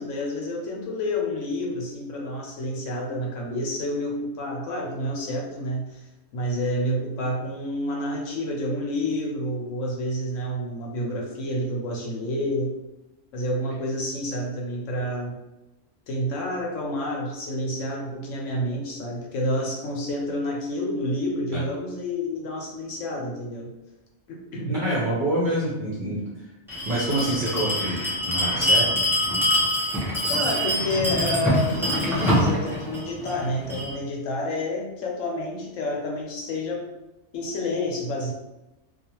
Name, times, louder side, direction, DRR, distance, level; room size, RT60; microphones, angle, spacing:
voice 1, 0.0-6.0 6.3-12.7 13.3-15.4 16.1-23.7 24.3-24.8 30.3-36.9 37.3-38.3, left 1 dB, 85° left, -1 dB, 1.0 m, -29 dB
voice 2, 24.7-26.2 26.8-28.0 28.2-28.9, right 1 dB, 50° right, -7 dB, 0.7 m, -26 dB
Bell, 26.7-33.9, equal, 5° right, 0.5 m, -24 dB
2.4 x 2.3 x 2.9 m, 0.98 s
omnidirectional pair, 1.3 m